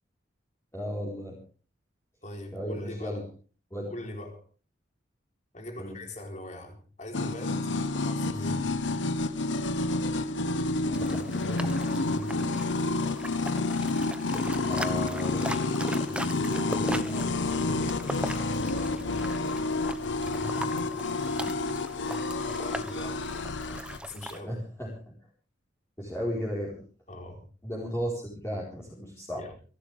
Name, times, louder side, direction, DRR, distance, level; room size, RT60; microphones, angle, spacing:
voice 1, 0.7-1.3 2.5-3.2 3.7-3.9 5.8-5.9 10.9-11.7 14.7-15.8 16.1-17.8 24.5-24.9 26.0-26.8 27.6-29.4, equal, 15° left, -5 dB, 4.5 m, -35 dB
voice 2, 2.2-3.2 3.9-4.4 5.5-8.6 12.1-12.4 22.6-23.2 24.0-24.6 27.1-27.5 29.3-29.5, left 1 dB, 40° left, 3 dB, 4.1 m, -41 dB
sound 1, 7.1-24.0, left 2 dB, 80° left, 1.1 m, -29 dB
sound 2, 10.9-24.4, right 1 dB, 5° right, 1.0 m, -40 dB
29.0 x 12.0 x 3.6 m, 0.39 s
head